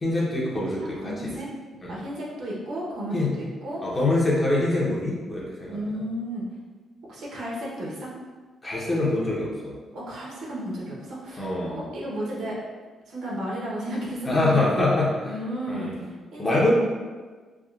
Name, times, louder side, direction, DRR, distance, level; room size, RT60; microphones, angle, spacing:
voice 1, 0.0-1.3 1.8-1.9 3.1-3.3 3.8-6.0 8.6-9.7 11.4-11.8 14.2-15.4 15.7-16.0 16.4-16.7, left 2 dB, 30° left, -5 dB, 0.8 m, -25 dB
voice 2, 0.5-1.5 1.9-3.8 5.6-6.4 7.1-8.1 9.9-12.6 13.1-14.9 15.2-16.7, equal, 75° right, -5 dB, 0.9 m, -33 dB
3.5 x 2.2 x 2.4 m, 1.4 s
cardioid pair, 80°, 0 cm